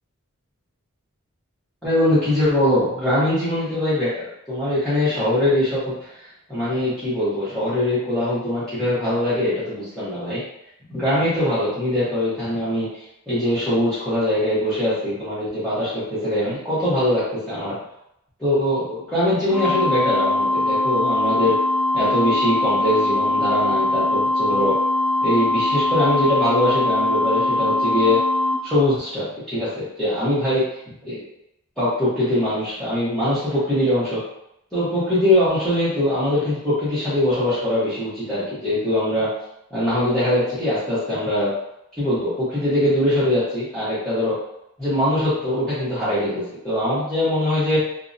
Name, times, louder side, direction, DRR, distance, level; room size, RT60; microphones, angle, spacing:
voice 1, 1.8-6.1 6.5-10.4 10.9-17.7 18.4-21.6 21.9-24.7 25.2-28.2 28.6-30.6 31.0-31.3 31.8-34.2 34.7-39.3 39.7-41.5 42.0-44.4 44.8-47.8, left 1 dB, 5° left, -13 dB, 0.7 m, -22 dB
sound 1, 19.5-28.5, left 2 dB, 80° right, 0.6 m, -21 dB
2.4 x 2.0 x 2.5 m, 0.80 s
head